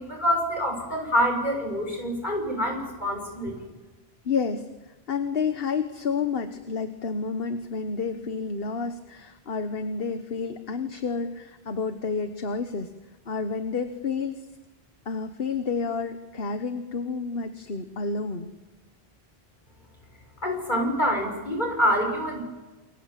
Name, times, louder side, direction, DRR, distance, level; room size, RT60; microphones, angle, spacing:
voice 1, 0.0-3.5 20.4-22.4, equal, 45° left, 3 dB, 6.5 m, -26 dB
voice 2, 4.2-4.7 5.1-12.9 13.3-14.4 15.0-18.5, left 5 dB, 65° left, 8 dB, 1.5 m, -30 dB
28.5 x 22.5 x 7.6 m, 1.2 s
omnidirectional pair, 1.1 m